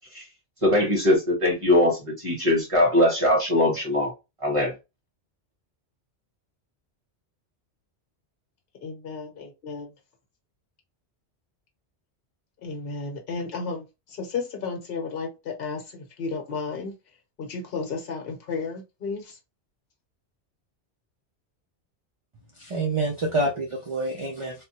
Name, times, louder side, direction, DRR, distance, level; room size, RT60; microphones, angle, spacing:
voice 1, 0.6-4.1 4.4-4.7, left 1 dB, 30° right, 1.5 m, -21 dB
voice 2, 8.8-9.9 12.6-13.8 14.2-15.8 16.2-16.9 17.4-19.2, left 4 dB, 60° left, 1.0 m, -32 dB
voice 3, 22.7-24.6, right 2 dB, 45° right, 0.4 m, -27 dB
3.4 x 2.1 x 2.8 m
omnidirectional pair, 1.2 m